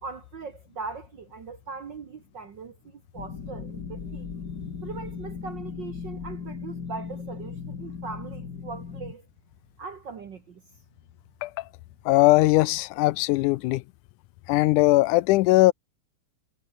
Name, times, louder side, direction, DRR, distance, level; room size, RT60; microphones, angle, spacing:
voice 1, 0.0-4.3 4.8-9.3 9.8-10.6, right 4 dB, 55° right, 1.3 m, -40 dB
sound 1, 3.1-9.1, left 6 dB, 35° left, 2.4 m, -37 dB
voice 2, 12.1-13.8 14.5-15.7, left 19 dB, 85° left, 2.1 m, -20 dB
omnidirectional pair, 3.5 m